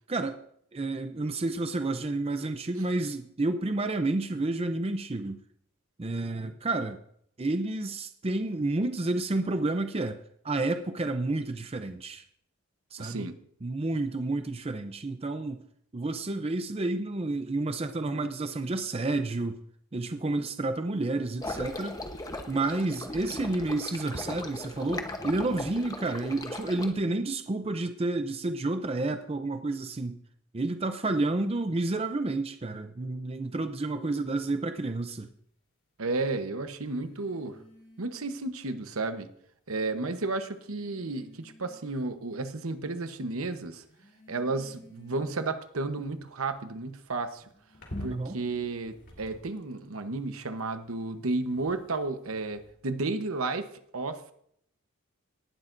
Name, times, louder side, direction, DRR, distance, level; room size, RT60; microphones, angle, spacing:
voice 1, 0.1-0.4 0.7-5.4 6.0-7.0 7.4-12.2 12.9-13.3 13.6-15.6 15.9-19.6 19.9-22.0 22.5-30.2 30.5-35.3 48.0-48.4, right 2 dB, 25° right, 8 dB, 0.5 m, -30 dB
voice 2, 13.0-13.4 36.0-37.6 38.0-39.3 39.7-43.8 44.3-47.4 48.0-53.7 53.9-54.3, right 3 dB, 70° right, 9 dB, 1.0 m, -32 dB
sound 1, 21.4-26.9, left 2 dB, 15° left, 1.0 m, -38 dB
sound 2, 34.7-35.0 36.8-38.5 39.5-39.6 40.3-42.0 42.5-43.0 43.8-49.8 50.6-52.7, left 1 dB, 55° left, 3.6 m, -49 dB
18.0 x 12.0 x 2.6 m, 0.68 s
head